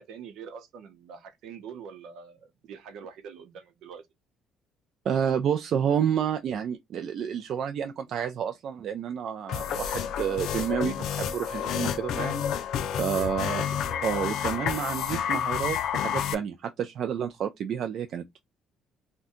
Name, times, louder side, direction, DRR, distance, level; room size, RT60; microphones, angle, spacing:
voice 1, 0.0-4.0 12.8-13.3 13.7-13.9, right 6 dB, 75° right, 0.7 m, -44 dB
voice 2, 5.1-12.6 13.0-13.6 14.0-18.4, right 8 dB, 55° right, 0.3 m, -30 dB
sound 1, 9.5-16.3, left 9 dB, 70° left, 0.4 m, -30 dB
2.6 x 2.2 x 3.6 m
cardioid pair, 140°, 0 cm